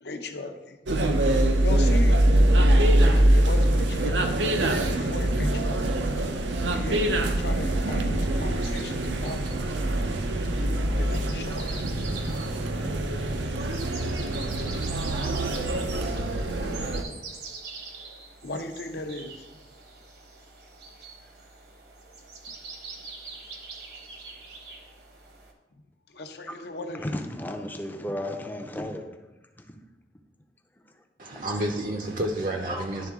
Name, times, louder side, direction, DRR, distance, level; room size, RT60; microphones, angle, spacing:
voice 1, 0.0-0.8 1.6-2.2 2.6-4.4 4.9-6.0 6.7-9.6 11.0-11.8 18.4-19.3 26.1-27.0, left 2 dB, 65° left, 0.7 m, -37 dB
sound 1, 0.9-17.0, right 1 dB, 85° right, 0.6 m, -24 dB
sound 2, 8.6-25.5, right 4 dB, 65° right, 1.0 m, -44 dB
voice 2, 26.9-29.0 29.6-29.8, left 1 dB, 10° left, 0.5 m, -34 dB
voice 3, 31.2-33.1, right 1 dB, 45° right, 0.6 m, -30 dB
11.0 x 3.7 x 3.6 m
head